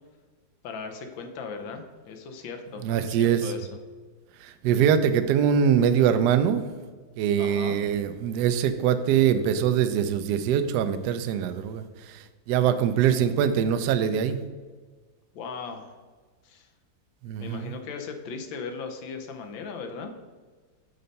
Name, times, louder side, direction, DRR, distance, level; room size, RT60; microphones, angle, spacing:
voice 1, 0.6-3.7 7.4-7.8 15.3-15.9 16.4-16.7 17.4-20.1, left 5 dB, 80° left, 5 dB, 1.6 m, -38 dB
voice 2, 2.8-3.4 4.6-6.7 7.2-11.8 12.5-14.4 17.2-17.7, right 8 dB, 70° right, 10 dB, 1.0 m, -23 dB
6.6 x 4.1 x 5.3 m, 1.4 s
omnidirectional pair, 2.1 m